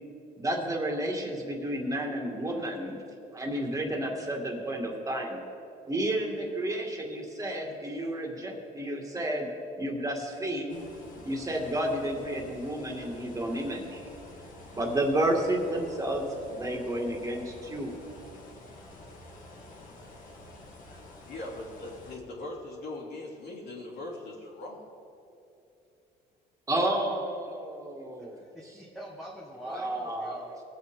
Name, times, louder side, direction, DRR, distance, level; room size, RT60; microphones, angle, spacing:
voice 1, 0.4-3.0 3.3-5.4 5.9-9.5 9.7-10.8 11.2-14.0 14.7-18.0 26.7-28.4 29.7-30.6, right 1 dB, 20° right, 1 dB, 2.2 m, -31 dB
sound 1, 10.7-22.2, left 1 dB, 55° left, 2.2 m, -49 dB
voice 2, 20.9-24.8, left 2 dB, 75° left, -5 dB, 3.1 m, -41 dB
voice 3, 28.2-30.5, right 1 dB, ahead, -3 dB, 1.3 m, -44 dB
21.0 x 7.7 x 3.8 m, 2.8 s
cardioid pair, 110°, 17 cm